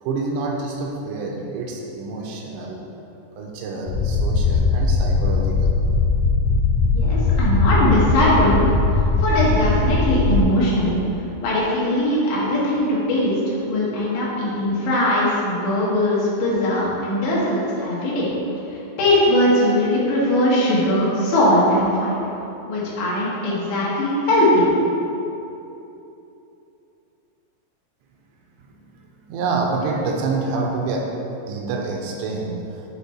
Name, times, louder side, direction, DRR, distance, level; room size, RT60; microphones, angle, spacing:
voice 1, 0.0-2.8 3.4-5.7 29.2-31.1 31.5-32.5, right 3 dB, 85° right, 0 dB, 2.9 m, -27 dB
sound 1, 3.9-10.4, left 3 dB, 90° left, 2.1 m, -19 dB
voice 2, 6.9-8.7 9.2-10.9 11.4-18.3 19.0-22.2 22.7-24.7, left 1 dB, 70° left, -7 dB, 3.6 m, -20 dB
10.5 x 4.0 x 4.3 m, 2.9 s
omnidirectional pair, 5.2 m